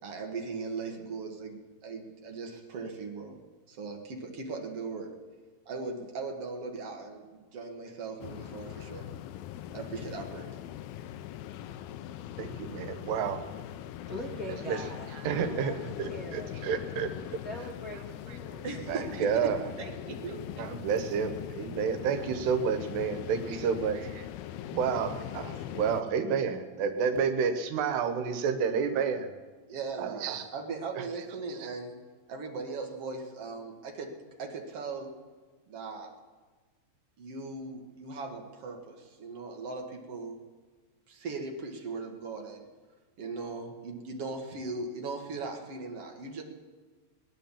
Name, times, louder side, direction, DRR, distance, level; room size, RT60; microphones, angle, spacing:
voice 1, 0.0-3.4 3.7-5.2 5.7-9.1 9.7-10.5 18.6-20.5 25.5-25.8 29.7-30.3 30.5-32.0 32.3-35.2 35.7-36.1 37.2-40.4 41.1-42.6 43.2-46.4, right 4 dB, 50° right, 2 dB, 1.9 m, -39 dB
sound 1, 8.2-26.0, left 11 dB, 80° left, 2.2 m, -41 dB
voice 2, 12.4-13.4 14.7-14.8 15.2-17.1 18.9-19.6 20.6-24.3 24.7-29.3 30.0-30.4 30.9-31.0, right 6 dB, 85° right, 8 dB, 3.2 m, -30 dB
voice 3, 14.1-16.5 17.1-19.2, left 1 dB, 55° left, -1 dB, 0.9 m, -42 dB
21.5 x 9.5 x 7.2 m, 1.4 s
omnidirectional pair, 4.7 m